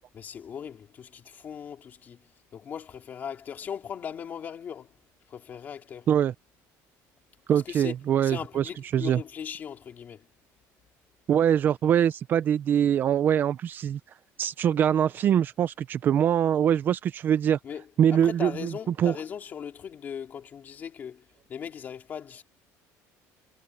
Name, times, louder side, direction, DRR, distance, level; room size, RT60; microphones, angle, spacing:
voice 1, 0.1-4.9 5.3-6.1 7.5-7.9 8.2-10.3 17.6-22.4, left 8 dB, 30° left, 2.7 m, -39 dB
voice 2, 7.5-9.2 11.3-14.0 14.4-17.6 18.0-18.7 19.0-19.2, right 9 dB, 30° right, 0.5 m, -23 dB
cardioid pair, 180°, 6 cm